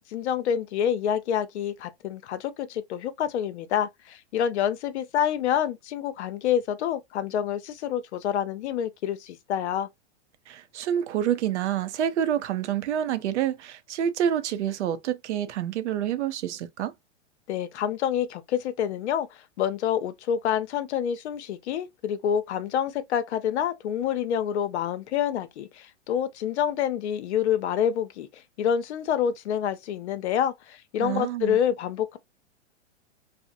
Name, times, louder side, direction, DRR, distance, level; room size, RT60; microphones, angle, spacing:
voice 1, 0.1-9.9 17.5-32.2, left 9 dB, 70° left, 0.7 m, -27 dB
voice 2, 10.5-16.9 31.0-31.6, right 10 dB, 75° right, 0.6 m, -28 dB
2.8 x 2.1 x 2.4 m
hypercardioid pair, 130°, 35 cm